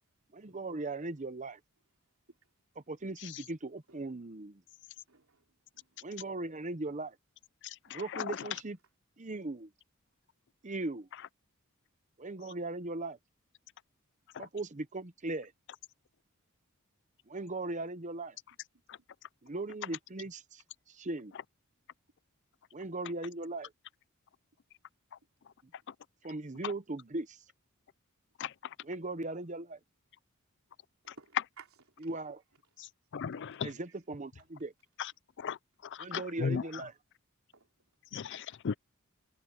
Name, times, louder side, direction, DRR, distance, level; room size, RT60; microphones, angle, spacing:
voice 1, 0.3-1.6 2.8-4.6 6.0-7.2 7.9-8.8 9.2-9.7 10.6-11.1 12.2-13.2 14.4-15.5 17.3-18.4 19.4-21.3 22.7-23.7 26.2-27.4 28.8-29.8 32.0-32.4 33.6-34.7 36.0-37.0, right 2 dB, 35° right, 0.9 m, -39 dB
voice 2, 5.1-5.4 5.7-6.2 31.0-32.1 33.5-33.6 37.5-37.7, right 5 dB, 75° right, 3.6 m, -57 dB
voice 3, 33.1-33.7 35.4-35.6 36.1-36.6 38.1-38.8, left 6 dB, 55° left, 0.4 m, -35 dB
head